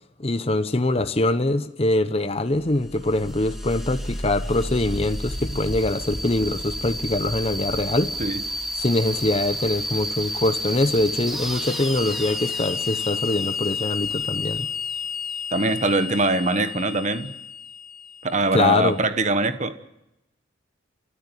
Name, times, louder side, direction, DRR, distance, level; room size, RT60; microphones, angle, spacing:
voice 1, 0.2-8.2 8.8-14.7 18.5-19.0, left 2 dB, 30° left, 0.9 m, -23 dB
sound 1, 2.5-18.8, left 2 dB, ahead, 2.5 m, -31 dB
voice 2, 15.5-17.3 18.2-19.7, right 2 dB, 35° right, 1.3 m, -22 dB
29.5 x 13.5 x 9.2 m
head